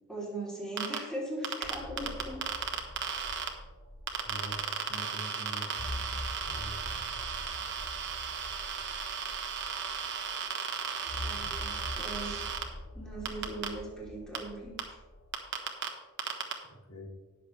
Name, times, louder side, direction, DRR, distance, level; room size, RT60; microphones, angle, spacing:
voice 1, 0.1-2.4 11.0-12.6 12.9-15.0, right 1 dB, 5° left, -5 dB, 3.2 m, -40 dB
sound 1, 0.8-1.0 1.4-3.5 4.1-12.6 13.3-13.7 14.4-14.5 14.8-14.9 15.3-15.9 16.2-16.5, right 7 dB, 55° right, 1.4 m, -35 dB
sound 2, 1.6-4.9 5.2-5.3 5.7-10.3 11.1-15.4, left 1 dB, 45° left, 1.4 m, -44 dB
voice 2, 4.2-5.7 6.4-7.1 16.7-17.1, right 1 dB, 90° left, -2 dB, 2.9 m, -44 dB
19.0 x 6.7 x 3.3 m, 1.3 s
head